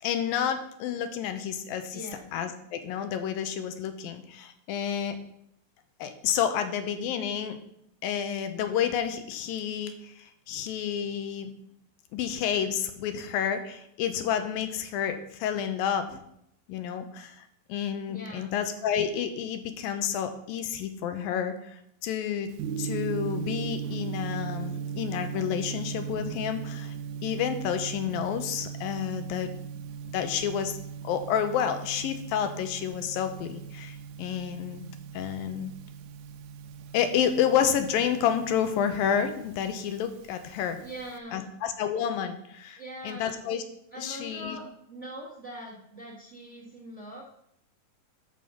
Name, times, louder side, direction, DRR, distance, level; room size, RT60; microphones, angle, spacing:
voice 1, 0.0-2.0 2.3-5.2 6.0-7.6 8.0-10.1 10.5-11.5 12.1-16.2 16.7-17.4 17.7-22.5 22.8-26.9 27.2-29.5 30.1-30.8 31.0-34.8 35.1-35.7 36.9-40.8 41.3-43.6 44.0-44.6, left 8 dB, 80° left, 8 dB, 2.6 m, -30 dB
voice 2, 1.9-2.3 18.1-18.5 40.8-41.5 42.8-43.3 43.9-47.4, right 1 dB, 45° right, -3 dB, 0.9 m, -42 dB
Gong, 22.5-41.2, right 7 dB, 90° right, 1.6 m, -38 dB
13.0 x 5.5 x 5.4 m, 0.75 s
omnidirectional pair, 4.2 m